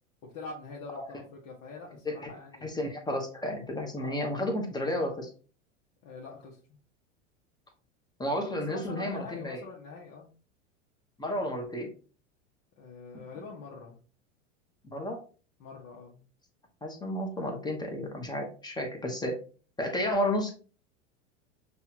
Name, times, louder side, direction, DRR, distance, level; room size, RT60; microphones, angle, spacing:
voice 1, 0.2-2.8 3.9-4.2 6.0-6.6 8.7-10.3 12.8-14.0 15.6-16.2, left 3 dB, 50° left, -3 dB, 1.1 m, -44 dB
voice 2, 2.6-5.3 8.2-9.6 11.2-11.9 14.8-15.2 16.8-19.4 19.8-20.5, left 1 dB, 10° left, 3 dB, 1.0 m, -32 dB
5.5 x 2.5 x 2.9 m, 0.38 s
hypercardioid pair, 95°, 37 cm